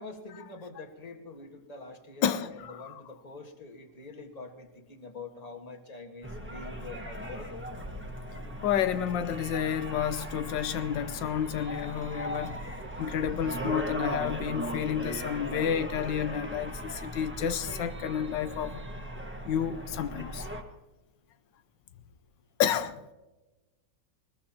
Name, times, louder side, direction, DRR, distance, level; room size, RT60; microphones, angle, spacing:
voice 1, 0.0-7.5, left 3 dB, 20° left, 1.6 m, -45 dB
voice 2, 2.2-3.0 7.4-7.5 8.6-12.6 13.0-18.8 19.4-20.5 22.6-23.0, left 9 dB, 85° left, 1.4 m, -30 dB
sound 1, 6.2-20.6, equal, 5° right, 1.4 m, -38 dB
21.0 x 20.5 x 2.9 m
omnidirectional pair, 1.9 m